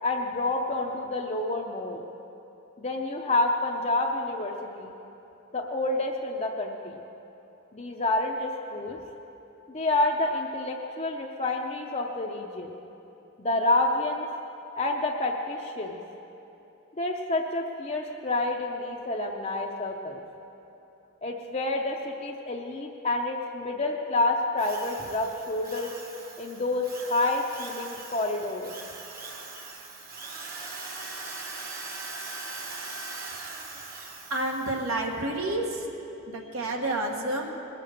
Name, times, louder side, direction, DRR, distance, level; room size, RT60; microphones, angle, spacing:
voice 1, 0.0-2.0 2.8-4.9 5.5-7.0 7.7-9.0 9.7-12.7 13.4-14.3 14.8-16.0 17.0-20.2 21.2-25.9 26.4-28.7, left 2 dB, 30° left, 0 dB, 0.6 m, -28 dB
Drill, 24.6-35.0, right 3 dB, 45° right, 1.2 m, -41 dB
voice 2, 33.9-35.9 36.3-37.5, right 1 dB, 80° right, 1 dB, 1.5 m, -30 dB
20.0 x 7.6 x 6.5 m, 3.0 s
head